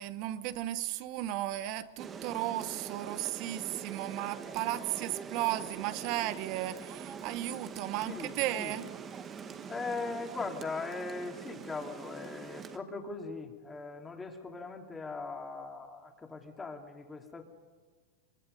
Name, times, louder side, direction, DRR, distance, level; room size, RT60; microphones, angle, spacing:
voice 1, 0.0-8.9, right 14 dB, 50° right, 13 dB, 1.0 m, -35 dB
Rain, 2.0-12.8, right 6 dB, 25° right, 1.3 m, -44 dB
voice 2, 8.1-8.8 9.7-17.4, left 3 dB, 15° left, 3 dB, 2.7 m, -40 dB
24.0 x 22.0 x 5.3 m, 1.4 s
hypercardioid pair, 130°, 0 cm